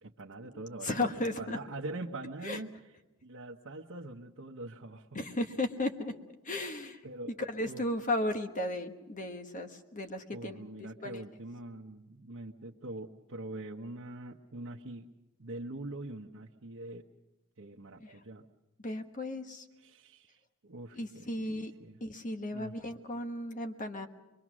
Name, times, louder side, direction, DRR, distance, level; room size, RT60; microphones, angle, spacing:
voice 1, 0.0-5.4 7.0-7.3 7.7-7.8 10.3-15.1 15.4-17.0 17.6-18.4 19.7-22.0 22.5-22.7, right 2 dB, 70° right, -1 dB, 1.0 m, -44 dB
voice 2, 0.5-1.6 2.4-2.6 5.1-6.1 6.4-7.0 7.4-10.6 11.0-11.2 18.0-18.1 18.8-19.6 21.0-21.7 22.0-24.1, left 1 dB, 40° left, 6 dB, 1.4 m, -35 dB
24.0 x 22.5 x 6.2 m, 1.0 s
head